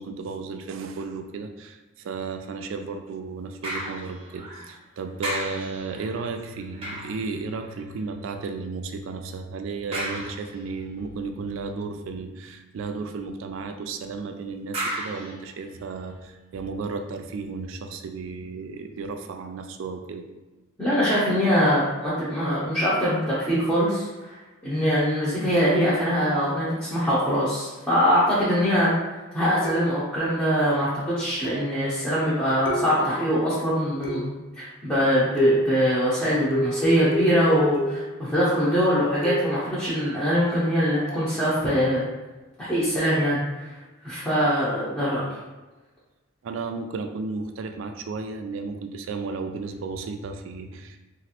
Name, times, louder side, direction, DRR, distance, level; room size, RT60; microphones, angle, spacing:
voice 1, 0.0-20.3 46.4-51.0, right 4 dB, 65° right, 6 dB, 0.3 m, -34 dB
sound 1, 3.6-4.8 5.2-8.0 9.9-10.9 14.7-16.2 16.8-16.9, right 1 dB, 30° right, 0.7 m, -35 dB
voice 2, 20.8-24.4 24.6-29.0 29.3-42.0 42.6-43.4 44.0-45.2, equal, 10° left, -11 dB, 0.7 m, -23 dB
sound 2, 29.6-30.2 31.4-31.8 32.7-33.3 34.0-34.5 35.4-35.9 36.5-38.2 39.2-39.7 41.1-41.3, equal, 65° left, 0.5 m, -28 dB
3.0 x 2.5 x 2.8 m, 1.1 s
head